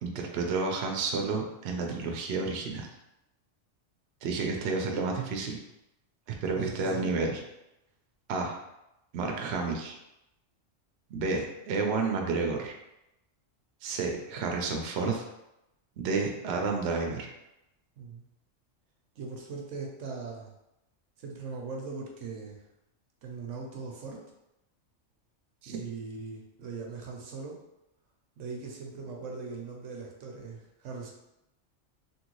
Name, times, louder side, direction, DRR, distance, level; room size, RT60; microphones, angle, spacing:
voice 1, 0.0-2.9 4.2-5.6 6.4-7.4 8.3-8.5 9.1-10.0 11.1-12.7 13.8-15.2 16.0-17.3 25.6-25.8, right 4 dB, 65° right, 2 dB, 0.8 m, -30 dB
voice 2, 6.6-7.1 18.0-18.2 19.2-20.5 21.2-22.6 23.2-24.2 25.7-27.6 28.4-31.1, right 4 dB, 90° right, 0 dB, 1.0 m, -40 dB
3.0 x 2.6 x 3.0 m, 0.89 s
omnidirectional pair, 1.3 m